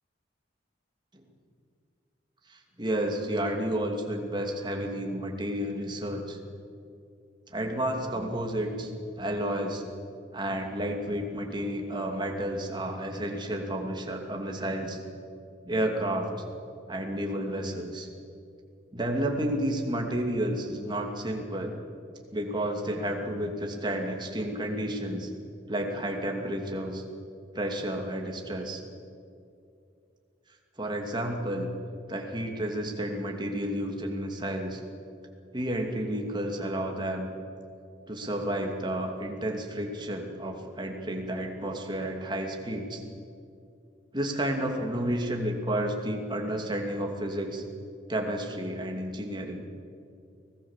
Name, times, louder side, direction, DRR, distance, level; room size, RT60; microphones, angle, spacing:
voice 1, 2.5-6.4 7.5-8.9 9.2-9.8 10.3-15.0 15.6-16.3 16.9-18.1 18.9-21.8 22.3-25.3 25.7-27.0 27.5-28.8 30.8-31.7 32.1-34.8 35.5-37.3 38.1-43.0 44.1-47.6 48.1-49.6, right 1 dB, 25° right, 2 dB, 2.6 m, -31 dB
24.5 x 18.0 x 7.4 m, 2.5 s
head